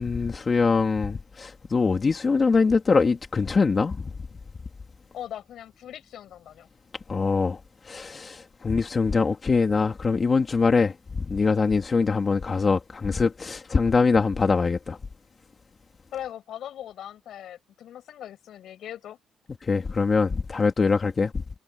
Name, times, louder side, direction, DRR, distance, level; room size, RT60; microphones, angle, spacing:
voice 1, 0.0-4.1 7.1-7.6 7.8-15.0 19.6-21.4, left 4 dB, 35° left, 2.1 m, -23 dB
voice 2, 5.1-6.7 16.1-19.2, left 11 dB, 75° left, 7.4 m, -39 dB
cardioid pair, 90°, 0 cm